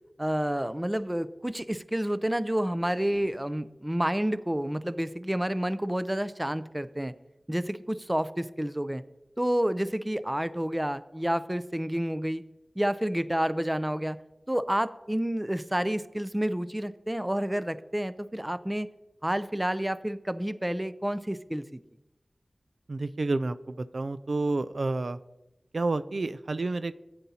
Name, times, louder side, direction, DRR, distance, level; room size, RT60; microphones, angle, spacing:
voice 1, 0.2-7.1 7.5-9.0 9.4-12.4 12.8-14.2 14.5-18.9 19.2-21.6, right 1 dB, 15° right, 14 dB, 0.5 m, -29 dB
voice 2, 22.9-25.2 25.7-26.9, right 2 dB, 75° right, 13 dB, 0.4 m, -29 dB
14.5 x 9.3 x 2.8 m, 0.94 s
wide cardioid pair, 50°, 0 cm